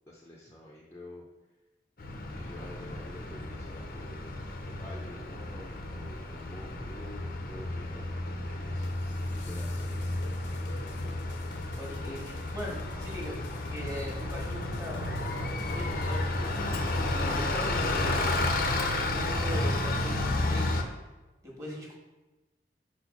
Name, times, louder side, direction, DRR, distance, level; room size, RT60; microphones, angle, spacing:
voice 1, 0.1-1.2 2.1-10.6, left 1 dB, 15° left, -4 dB, 0.7 m, -49 dB
Bus, 2.0-20.8, left 2 dB, 50° left, 0.6 m, -32 dB
sound 1, 8.7-17.9, left 2 dB, 85° left, 0.8 m, -49 dB
voice 2, 11.5-13.3 13.7-15.1 15.7-16.3 16.6-18.4 18.9-21.0 21.4-21.9, equal, 15° right, -3 dB, 1.5 m, -40 dB
4.8 x 4.4 x 5.9 m, 1.1 s
head